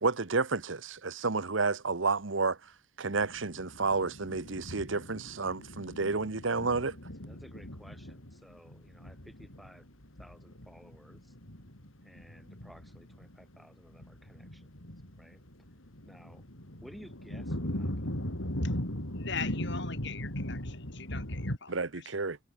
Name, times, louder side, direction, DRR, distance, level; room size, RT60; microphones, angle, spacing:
voice 1, 0.0-2.6 3.0-7.0 21.7-22.4, right 4 dB, 70° right, 1.2 m, -30 dB
sound 1, 3.1-21.6, left 1 dB, 85° left, 5.9 m, -39 dB
voice 2, 7.2-9.9 10.2-11.3 12.0-14.9 15.2-15.4 16.1-16.4 16.8-18.1, equal, ahead, 7.3 m, -55 dB
voice 3, 19.1-22.1, left 6 dB, 60° left, 7.4 m, -41 dB
head